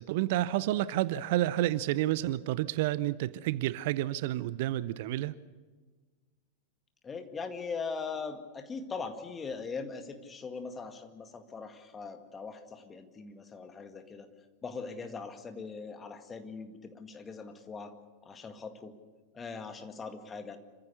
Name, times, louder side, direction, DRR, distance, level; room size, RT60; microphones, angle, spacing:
voice 1, 0.0-5.3, right 15 dB, 50° right, 18 dB, 0.6 m, -30 dB
voice 2, 7.0-14.3 14.6-18.0 18.2-18.9 19.3-20.6, left 5 dB, 20° left, 7 dB, 2.0 m, -40 dB
26.5 x 15.0 x 8.3 m, 1.4 s
figure-of-eight pair, 90°, 0 cm